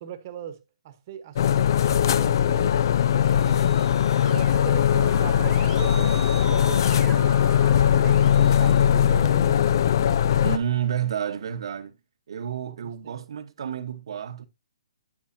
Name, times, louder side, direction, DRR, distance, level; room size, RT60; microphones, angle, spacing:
voice 1, 0.0-0.6 0.8-2.8 3.2-3.8 4.2-7.4 8.0-9.6 12.7-13.2, right 10 dB, 30° right, 1.1 m, -39 dB
sound 1, 1.4-10.6, left 9 dB, 45° left, 0.4 m, -20 dB
Keyboard (musical), 3.0-9.6, right 5 dB, 10° right, 1.3 m, -43 dB
voice 2, 10.4-12.0 12.3-14.4, right 9 dB, 55° right, 1.0 m, -30 dB
8.9 x 8.6 x 2.7 m
hypercardioid pair, 165°, 3 cm